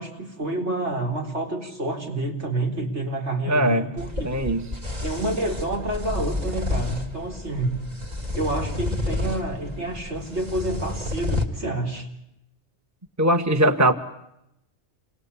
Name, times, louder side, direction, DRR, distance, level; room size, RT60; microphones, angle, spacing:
voice 1, 0.0-4.7 5.0-7.8 8.3-12.1, right 2 dB, 75° right, 2 dB, 4.5 m, -28 dB
voice 2, 3.5-3.9 4.2-4.7 13.2-13.9, right 1 dB, 15° right, 8 dB, 1.4 m, -20 dB
sound 1, 4.0-11.4, left 2 dB, 35° right, 2.7 m, -30 dB
29.0 x 24.5 x 8.5 m, 0.82 s
omnidirectional pair, 1.2 m